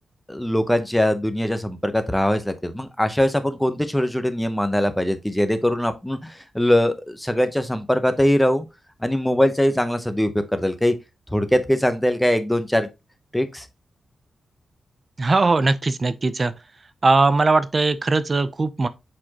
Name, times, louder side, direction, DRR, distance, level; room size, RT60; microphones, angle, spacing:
voice 1, 0.3-8.6 9.0-10.9 11.3-12.9 13.3-13.7, left 1 dB, 5° left, 0.8 m, -21 dB
voice 2, 15.2-16.5 17.0-18.9, right 3 dB, 30° right, 0.6 m, -19 dB
7.5 x 4.3 x 2.9 m
wide cardioid pair, 135°, 0 cm